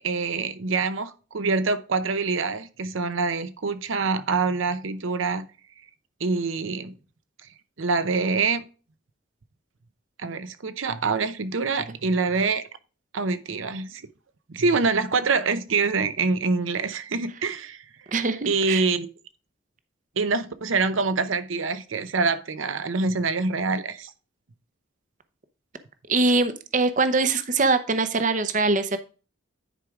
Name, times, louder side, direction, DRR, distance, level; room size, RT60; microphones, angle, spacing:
voice 1, 0.0-5.5 6.2-6.9 7.8-8.6 10.2-12.6 13.1-14.0 14.5-17.8 18.5-19.1 20.2-24.1, right 4 dB, 80° right, 0.7 m, -25 dB
voice 2, 18.1-18.8 26.1-29.0, right 3 dB, 40° right, 0.7 m, -23 dB
10.0 x 4.8 x 3.6 m
head